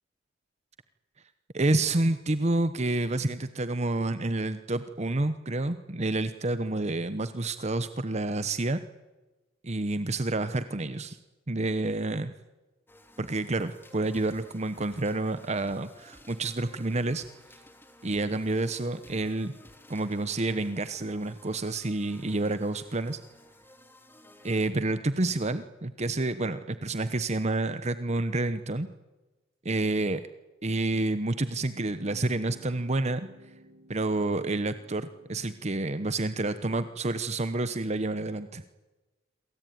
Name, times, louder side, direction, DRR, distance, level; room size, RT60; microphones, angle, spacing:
voice 1, 1.5-8.8 9.6-11.2 11.5-12.3 13.2-17.2 18.0-19.5 19.9-23.2 24.4-28.9 29.6-30.3 30.6-33.3 33.9-38.6, right 2 dB, 35° right, 11 dB, 1.0 m, -29 dB
sound 1, 12.9-24.8, left 1 dB, 10° left, 2.8 m, -55 dB
sound 2, 31.7-37.2, right 1 dB, 55° right, 3.3 m, -56 dB
27.5 x 23.0 x 9.5 m, 1.1 s
head